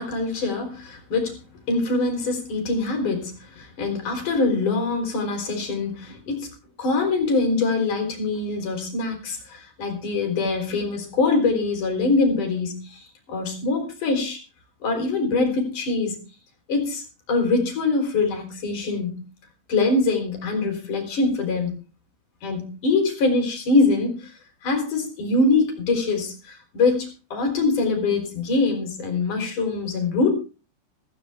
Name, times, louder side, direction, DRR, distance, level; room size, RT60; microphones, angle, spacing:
voice 1, 0.0-1.4 1.7-6.5 6.8-14.4 14.8-16.2 16.7-19.2 19.7-21.8 22.4-24.3 24.6-30.3, left 3 dB, 45° left, 4 dB, 5.0 m, -24 dB
15.0 x 15.0 x 3.6 m, 0.33 s
omnidirectional pair, 5.6 m